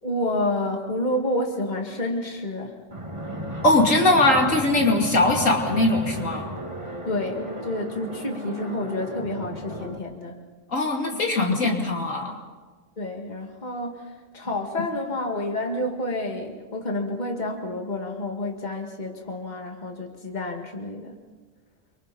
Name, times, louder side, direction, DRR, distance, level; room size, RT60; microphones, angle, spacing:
voice 1, 0.0-2.8 7.0-10.4 13.0-21.1, left 1 dB, 35° left, 2 dB, 2.3 m, -29 dB
Fixed-wing aircraft airplane, 2.9-10.0, right 1 dB, 25° right, 2.2 m, -34 dB
voice 2, 3.6-6.5 10.7-12.3, left 2 dB, 90° left, 0 dB, 3.3 m, -20 dB
29.0 x 24.0 x 4.3 m, 1.3 s
omnidirectional pair, 1.3 m